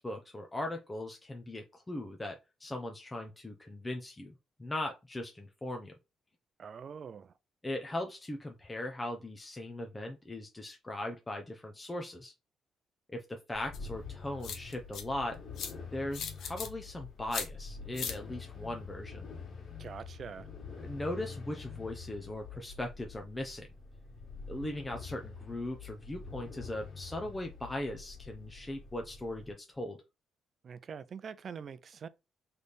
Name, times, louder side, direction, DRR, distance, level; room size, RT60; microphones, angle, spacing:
voice 1, 0.0-5.9 7.6-12.3 13.1-15.4 15.9-19.3 20.8-23.7 24.5-30.0, left 1 dB, 15° left, 0.7 m, -39 dB
voice 2, 6.6-7.3 19.8-20.5 30.6-32.1, right 6 dB, 50° right, 0.5 m, -44 dB
sound 1, 13.5-29.5, left 5 dB, 50° left, 1.9 m, -46 dB
sound 2, 13.7-13.8 14.4-15.0 15.6-15.7 16.1-16.7 17.3-17.5 18.0-18.2, left 7 dB, 70° left, 0.8 m, -37 dB
3.3 x 3.3 x 4.2 m
cardioid pair, 90°, 0 cm